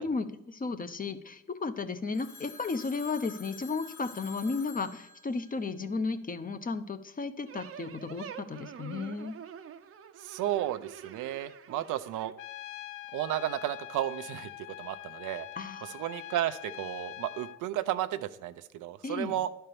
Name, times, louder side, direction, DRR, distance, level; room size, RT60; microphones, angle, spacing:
voice 1, 0.0-9.4 15.6-16.0 19.0-19.4, left 4 dB, 30° left, 10 dB, 0.8 m, -34 dB
Telephone, 2.1-6.4, left 3 dB, 65° left, 1.6 m, -50 dB
sound 1, 7.5-12.3, right 8 dB, 50° right, 0.7 m, -46 dB
voice 2, 10.2-12.3 13.1-15.5 15.8-19.5, right 13 dB, 85° right, 11 dB, 0.6 m, -33 dB
Trumpet, 12.4-17.6, left 15 dB, 80° left, 0.5 m, -44 dB
11.0 x 4.5 x 6.8 m, 0.83 s
cardioid pair, 90°, 30 cm